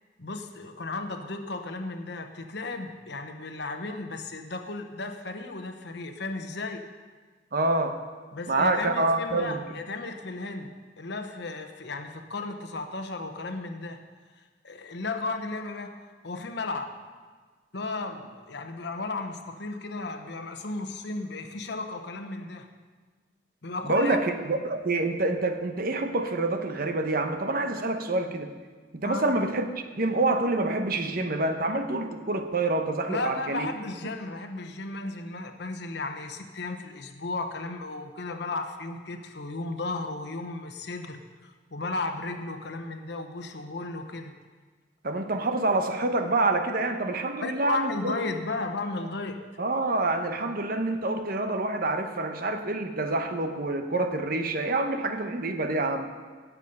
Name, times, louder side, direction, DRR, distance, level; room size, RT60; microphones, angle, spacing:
voice 1, 0.2-6.8 8.3-14.0 14.4-16.0 16.2-16.9 17.7-22.7 23.6-24.2 29.0-29.3 33.1-44.3 47.4-49.4 50.3-50.5, left 3 dB, 65° left, 6 dB, 1.0 m, -34 dB
voice 2, 7.5-8.0 8.5-9.6 23.8-28.5 28.9-29.6 30.0-33.7 45.0-48.2 49.6-56.1, right 2 dB, 50° right, 7 dB, 0.9 m, -27 dB
16.5 x 7.2 x 5.4 m, 1.5 s
head